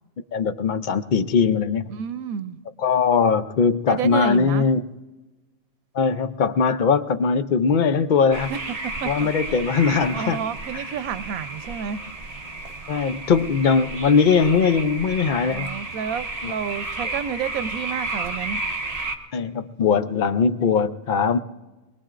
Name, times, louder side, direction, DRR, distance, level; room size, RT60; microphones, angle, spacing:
voice 1, 0.3-1.9 2.8-4.8 5.9-8.5 9.1-10.4 12.9-15.7 16.4-16.5 19.3-21.4, left 5 dB, 60° left, 11 dB, 0.5 m, -20 dB
voice 2, 1.9-2.6 3.9-4.7 8.5-8.6 9.0-9.3 10.1-12.0 15.5-18.6, right 7 dB, 90° right, 12 dB, 1.1 m, -30 dB
sound 1, 8.3-19.2, right 3 dB, 30° right, 1.1 m, -32 dB
22.0 x 22.0 x 2.5 m, 1.1 s
omnidirectional pair, 1.4 m